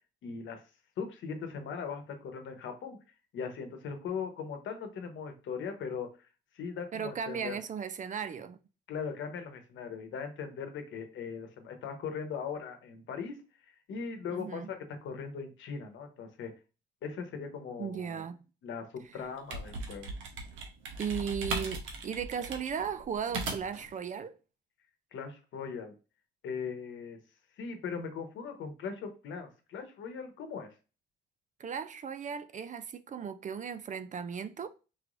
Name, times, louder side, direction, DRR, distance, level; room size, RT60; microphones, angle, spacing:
voice 1, 0.2-0.6 1.0-3.0 3.3-6.3 6.5-7.6 8.9-13.4 13.9-16.5 17.0-18.2 18.6-20.1 25.1-25.9 26.4-27.2 27.6-30.7, left 6 dB, 75° left, 1.0 m, -39 dB
voice 2, 6.9-8.6 14.3-14.7 17.8-18.4 21.0-24.4 31.6-34.7, right 7 dB, 40° right, 0.4 m, -36 dB
sound 1, 19.2-23.9, right 3 dB, 80° right, 1.0 m, -38 dB
4.6 x 3.1 x 2.5 m
cardioid pair, 90°, 20 cm